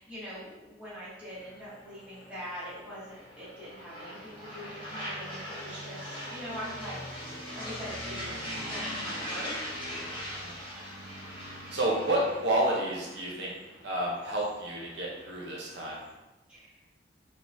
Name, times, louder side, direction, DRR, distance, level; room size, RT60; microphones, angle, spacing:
voice 1, 0.0-7.0 7.3-9.7 16.5-16.7, equal, 5° right, -10 dB, 0.9 m, -43 dB
sound 1, 1.3-16.1, equal, 25° left, 0.9 m, -41 dB
voice 2, 11.7-13.5 13.8-16.0, right 1 dB, 65° right, -4 dB, 0.6 m, -30 dB
3.6 x 2.1 x 2.5 m, 1.0 s
head